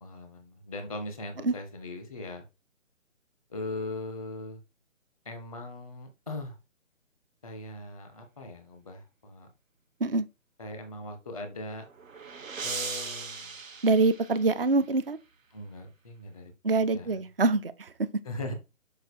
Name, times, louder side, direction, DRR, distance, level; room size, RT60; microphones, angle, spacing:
voice 1, 0.0-2.4 3.5-4.6 5.2-6.6 7.4-9.5 10.6-11.9 12.6-13.5 15.5-16.5 16.9-17.2 18.2-18.5, left 2 dB, 5° right, 0.7 m, -39 dB
sound 1, 11.5-14.9, right 5 dB, 75° right, 1.4 m, -39 dB
voice 2, 13.8-15.2 16.6-18.1, right 3 dB, 45° right, 0.7 m, -25 dB
6.6 x 5.2 x 4.7 m
hypercardioid pair, 170°, 40 cm